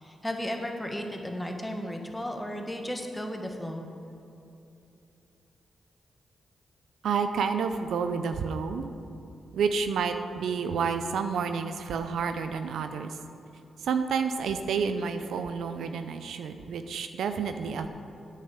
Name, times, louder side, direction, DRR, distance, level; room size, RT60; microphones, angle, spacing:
voice 1, 0.0-3.8, equal, 10° left, 3 dB, 1.5 m, -34 dB
voice 2, 7.0-8.9 9.5-13.2 13.8-17.9, right 6 dB, 80° right, 8 dB, 0.5 m, -29 dB
8.6 x 6.6 x 7.5 m, 2.8 s
supercardioid pair, 50°, 0 cm